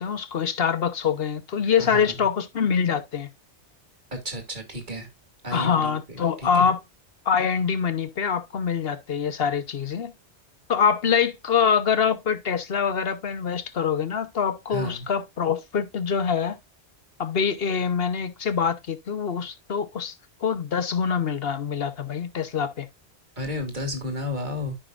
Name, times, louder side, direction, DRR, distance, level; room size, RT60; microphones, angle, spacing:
voice 1, 0.0-3.3 5.5-6.8 7.2-10.1 10.7-16.6 17.2-20.1 20.4-22.9, left 7 dB, 60° left, 1.1 m, -24 dB
voice 2, 1.8-2.3 4.1-5.1 5.4-6.7 14.7-15.1 23.4-24.8, left 1 dB, 45° right, 2.5 m, -32 dB
13.0 x 5.6 x 2.4 m
omnidirectional pair, 1.2 m